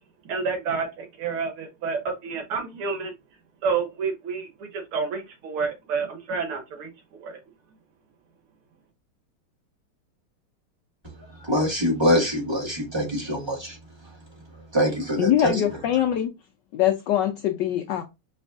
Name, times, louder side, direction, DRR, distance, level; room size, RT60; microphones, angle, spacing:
voice 1, 0.3-3.1 3.6-7.4, right 5 dB, 90° right, 2.1 m, -29 dB
voice 2, 11.4-13.7 14.7-15.6, equal, 15° right, 1.4 m, -24 dB
voice 3, 15.2-16.3 16.7-18.0, left 11 dB, 75° left, 1.0 m, -23 dB
5.2 x 3.2 x 2.4 m
omnidirectional pair, 2.4 m